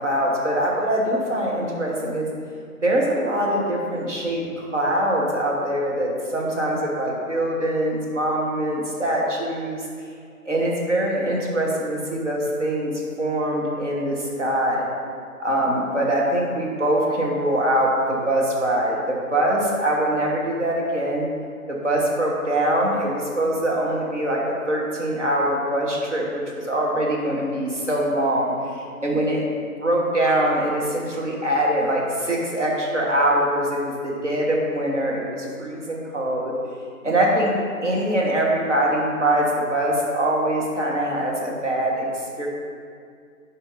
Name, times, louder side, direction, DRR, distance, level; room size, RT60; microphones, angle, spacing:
voice 1, 0.0-2.3 2.8-9.8 10.4-12.9 13.2-14.9 15.4-21.3 21.7-29.4 29.8-36.5 37.0-37.5 37.8-42.5, right 1 dB, 55° right, -3 dB, 1.3 m, -23 dB
8.9 x 4.5 x 2.6 m, 2.2 s
figure-of-eight pair, 160°, 44 cm